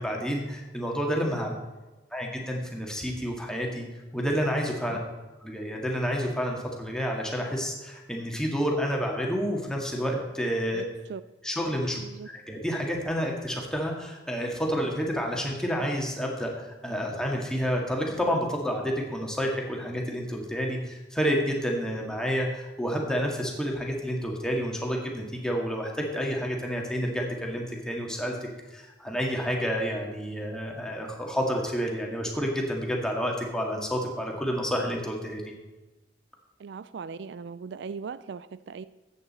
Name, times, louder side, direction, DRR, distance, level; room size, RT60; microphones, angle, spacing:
voice 1, 0.0-1.5 2.1-3.9 4.1-5.0 5.4-10.8 11.4-12.0 12.3-28.4 28.7-35.5, equal, 5° left, 0 dB, 1.8 m, -29 dB
voice 2, 12.0-12.3 36.6-38.9, right 5 dB, 70° right, 16 dB, 0.4 m, -39 dB
13.5 x 8.6 x 4.2 m, 1.1 s
head